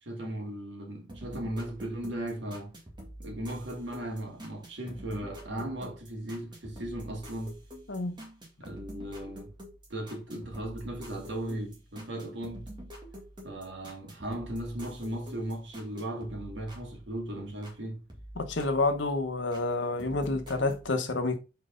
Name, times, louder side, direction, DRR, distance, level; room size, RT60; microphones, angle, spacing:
voice 1, 0.0-2.7 3.2-7.6 8.6-9.6 9.9-12.7 13.4-18.0, right 1 dB, 70° right, 2.1 m, -37 dB
sound 1, 1.1-17.8 18.1-19.7 20.0-20.8, equal, 25° right, 2.1 m, -47 dB
voice 2, 7.9-8.2 18.4-21.4, left 2 dB, 75° left, 1.1 m, -29 dB
5.0 x 4.6 x 5.1 m
head